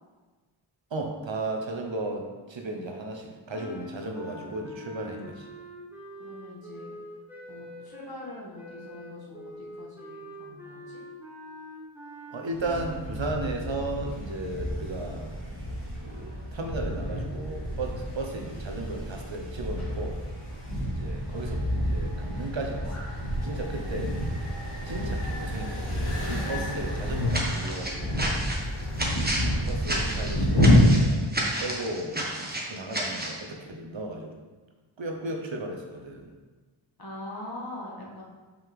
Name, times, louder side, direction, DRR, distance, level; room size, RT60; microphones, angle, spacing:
voice 1, 0.9-5.5 12.3-15.3 16.0-20.2 20.9-23.1 23.4-24.2 24.8-26.2 26.5-28.4 29.6-31.3 31.6-32.2 32.5-34.4 35.0-36.3, right 2 dB, 65° right, 3 dB, 1.0 m, -35 dB
sound 1, 3.5-13.1, equal, 5° right, 1.7 m, -44 dB
voice 2, 6.2-6.9 7.5-11.0 37.0-38.2, left 1 dB, 45° left, -4 dB, 1.7 m, -42 dB
sound 2, 12.5-30.8, left 1 dB, 85° left, 2.1 m, -29 dB
sound 3, 27.3-33.4, right 1 dB, 20° right, 1.2 m, -31 dB
5.7 x 5.6 x 3.7 m, 1.3 s
wide cardioid pair, 60°, 49 cm